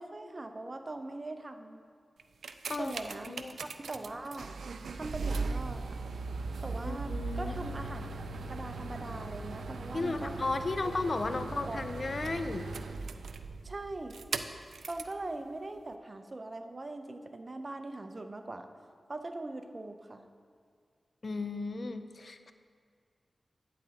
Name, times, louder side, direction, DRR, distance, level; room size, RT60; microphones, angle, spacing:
voice 1, 0.0-1.8 2.8-4.5 4.9-6.0 6.6-10.5 10.8-10.9 11.7-11.9 12.2-12.4 13.6-14.2 14.9-18.7 19.1-20.3, right 2 dB, 45° right, 7 dB, 0.6 m, -41 dB
sound 1, 2.2-15.2 15.9-16.0, right 3 dB, 90° right, 0.3 m, -38 dB
voice 2, 3.2-3.6 6.8-7.8 9.9-12.7 21.2-22.5, left 3 dB, 55° left, 9 dB, 0.5 m, -34 dB
11.5 x 9.4 x 2.9 m, 2.1 s
cardioid pair, 45°, 0 cm